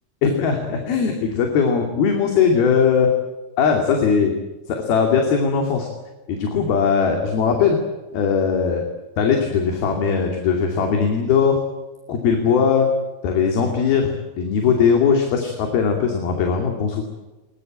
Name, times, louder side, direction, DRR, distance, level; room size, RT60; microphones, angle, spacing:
voice 1, 0.2-3.1 3.6-4.3 4.7-5.9 6.3-7.8 8.1-8.8 9.2-11.6 12.1-12.9 13.2-17.0, left 6 dB, 75° left, 3 dB, 4.5 m, -19 dB
22.0 x 21.0 x 8.9 m, 1.1 s
omnidirectional pair, 4.5 m